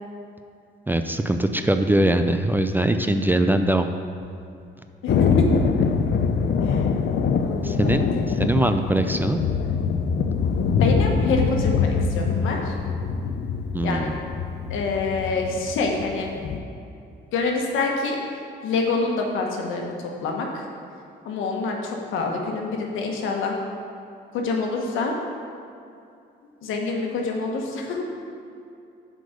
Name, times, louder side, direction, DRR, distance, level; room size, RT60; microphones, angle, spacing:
voice 1, 0.9-3.9 7.6-8.1 8.4-9.4 13.7-14.1, right 1 dB, 10° right, 7 dB, 0.4 m, -21 dB
voice 2, 5.0-5.5 6.6-6.8 7.4-8.0 10.8-11.9 12.1-12.7 13.8-14.1 14.7-16.3 17.3-18.2 18.6-19.9 20.2-20.6 21.2-23.6 24.3-25.1 26.6-28.1, left 3 dB, 85° left, 1 dB, 1.3 m, -26 dB
Thunder, 5.1-16.6, left 5 dB, 60° left, 0.6 m, -24 dB
7.7 x 5.2 x 6.6 m, 2.6 s
cardioid pair, 90°, 20 cm